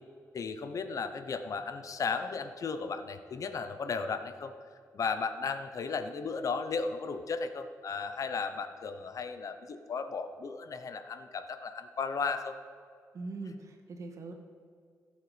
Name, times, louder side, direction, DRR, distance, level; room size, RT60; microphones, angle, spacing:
voice 1, 0.3-4.5 4.9-12.6, left 5 dB, 60° left, 9 dB, 0.8 m, -35 dB
voice 2, 13.1-14.3, right 3 dB, 55° right, 4 dB, 1.8 m, -41 dB
16.5 x 7.3 x 5.1 m, 2.2 s
cardioid pair, 100°, 6 cm